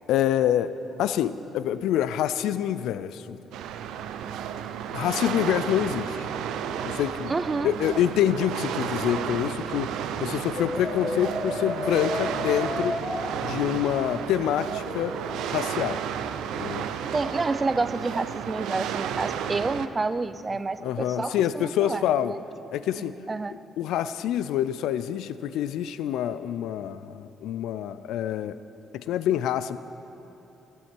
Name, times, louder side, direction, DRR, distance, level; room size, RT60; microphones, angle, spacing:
voice 1, 0.1-0.7 1.0-3.4 4.9-6.3 6.8-7.3 7.6-13.0 13.4-15.2 15.5-16.0 16.6-16.9 20.8-22.3 22.7-23.2 23.8-28.6 28.9-29.8, left 10 dB, 85° left, 14 dB, 0.3 m, -26 dB
sound 1, 3.5-19.9, right 8 dB, 90° right, 0.5 m, -32 dB
voice 2, 7.3-7.7 17.1-22.0 22.3-22.4 23.0-23.6, right 3 dB, 25° right, 14 dB, 0.4 m, -29 dB
Brass instrument, 10.6-13.3 14.9-15.4, left 2 dB, 40° left, 1.7 m, -32 dB
15.0 x 13.0 x 4.5 m, 3.0 s
cardioid pair, 90°, 0 cm